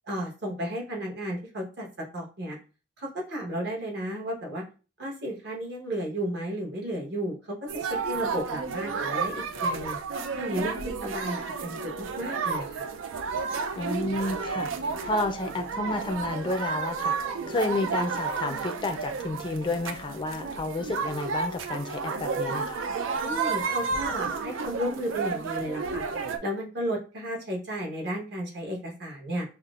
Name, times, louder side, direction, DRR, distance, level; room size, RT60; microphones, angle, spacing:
voice 1, 0.1-1.9 2.1-2.6 3.0-4.6 5.0-10.0 10.3-11.4 11.6-12.8 23.2-26.1 26.4-29.5, equal, 60° right, 1.2 m, -33 dB
sound 1, 7.7-26.4, right 5 dB, 85° right, 0.4 m, -31 dB
voice 2, 13.8-17.1 17.5-22.8, left 2 dB, 25° left, 0.4 m, -31 dB
5.6 x 2.1 x 2.4 m
head